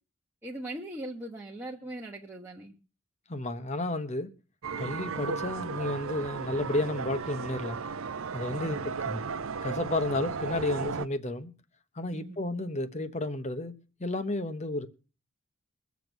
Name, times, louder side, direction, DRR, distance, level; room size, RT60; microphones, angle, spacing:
voice 1, 0.4-2.7 8.6-8.9 12.1-12.4, right 1 dB, 10° right, 1.2 m, -40 dB
voice 2, 3.3-4.3 4.8-7.8 8.3-9.2 9.6-11.5 11.9-14.9, left 2 dB, 35° left, 1.1 m, -32 dB
sound 1, 4.6-11.1, right 5 dB, 80° right, 0.7 m, -35 dB
21.5 x 7.2 x 6.3 m
head